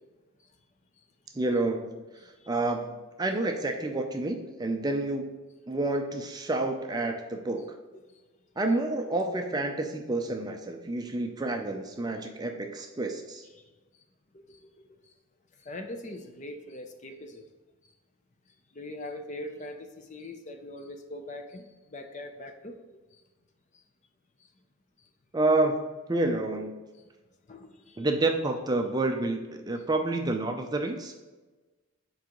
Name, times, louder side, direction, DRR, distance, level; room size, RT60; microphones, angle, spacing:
voice 1, 1.3-5.3 5.7-7.8 8.6-13.4 25.3-26.7 28.0-31.1, right 2 dB, 20° right, 0.4 m, -29 dB
voice 2, 13.5-14.0 14.3-15.1 15.5-17.4 17.8-17.9 18.5-22.8 23.1-23.2 23.7-23.8 24.4-24.5 25.0-25.1 27.5-28.1, left 1 dB, 35° left, 0.5 m, -43 dB
7.3 x 4.6 x 3.0 m
head